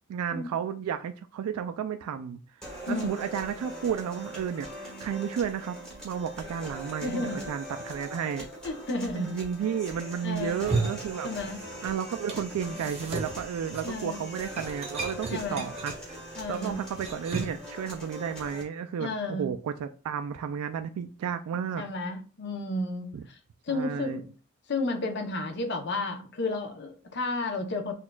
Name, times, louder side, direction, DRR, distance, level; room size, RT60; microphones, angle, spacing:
voice 1, 0.1-2.4 2.9-5.8 6.0-8.5 9.1-11.3 11.8-16.2 16.5-21.8 23.1-23.2 23.7-24.2, right 7 dB, 90° right, 0.3 m, -32 dB
sound 1, 2.6-18.6, right 1 dB, 5° left, 1.3 m, -42 dB
voice 2, 7.0-7.4 8.6-9.3 10.2-10.7 11.2-11.6 13.8-14.2 15.3-15.6 16.4-16.8 19.0-19.5 21.8-23.4 23.7-24.3 24.7-27.9, left 2 dB, 55° left, 0.7 m, -32 dB
sound 2, 10.4-11.9 12.1-17.7, right 3 dB, 30° right, 0.8 m, -35 dB
6.0 x 2.4 x 2.2 m
head